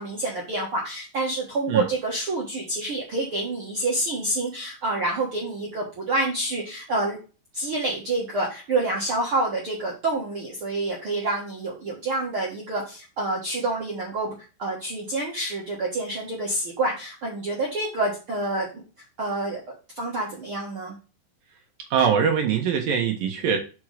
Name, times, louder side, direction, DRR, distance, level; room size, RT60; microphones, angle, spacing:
voice 1, 0.0-7.2 7.5-14.3 14.6-18.7 19.2-20.9, right 2 dB, 85° right, -3 dB, 1.2 m, -27 dB
voice 2, 21.9-23.6, right 7 dB, 70° right, 3 dB, 2.3 m, -22 dB
6.1 x 5.4 x 4.9 m, 0.33 s
omnidirectional pair, 5.1 m